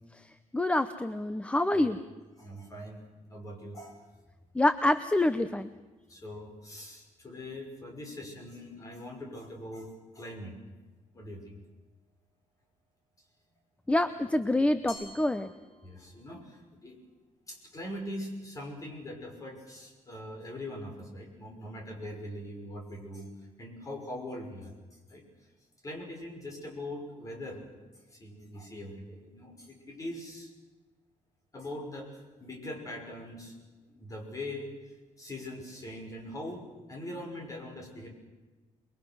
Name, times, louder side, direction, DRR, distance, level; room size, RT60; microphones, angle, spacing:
voice 1, 0.5-2.0 4.5-5.7 13.9-15.5, left 1 dB, 10° left, 11 dB, 0.7 m, -26 dB
voice 2, 2.4-3.0 3.3-4.0 6.1-10.5 11.1-11.5 15.8-17.0 17.5-23.3 23.6-24.7 25.1-25.2 25.8-27.8 28.1-30.5 31.5-33.5 33.9-34.7 35.2-38.1, left 1 dB, 25° left, 2 dB, 6.0 m, -42 dB
Glass, 14.9-16.3, left 2 dB, 50° left, 7.5 m, -49 dB
28.0 x 22.0 x 6.2 m, 1.2 s
cardioid pair, 155°, 13 cm